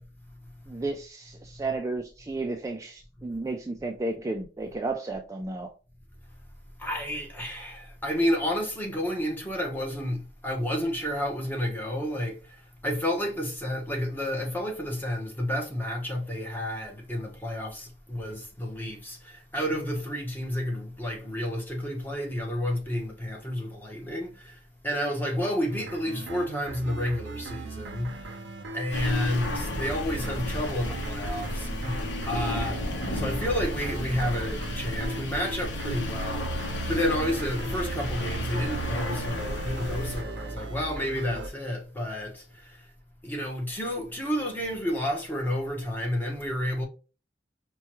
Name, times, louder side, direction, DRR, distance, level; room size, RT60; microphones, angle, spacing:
voice 1, 0.7-5.7, right 2 dB, 20° right, 0.3 m, -33 dB
voice 2, 6.8-12.6 12.8-28.4 28.7-42.9 43.2-46.9, equal, 10° left, 0.9 m, -31 dB
sound 1, 25.7-41.5, right 2 dB, 80° right, 0.6 m, -39 dB
sound 2, 28.9-40.2, left 1 dB, 70° left, 0.8 m, -33 dB
4.4 x 2.2 x 2.9 m
head